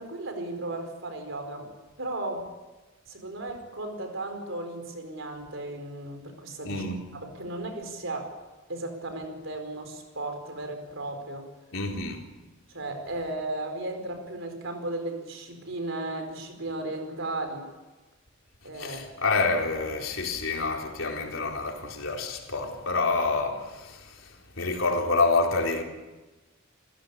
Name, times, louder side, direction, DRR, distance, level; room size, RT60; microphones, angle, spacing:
voice 1, 0.0-1.7 2.0-2.4 3.1-6.8 7.1-8.3 8.7-11.5 12.7-17.7 18.6-19.0, right 2 dB, 70° right, 4.8 m, -35 dB
voice 2, 6.6-7.0 11.7-12.2 18.7-25.8, left 3 dB, 75° left, 4.0 m, -28 dB
29.0 x 15.0 x 8.6 m
head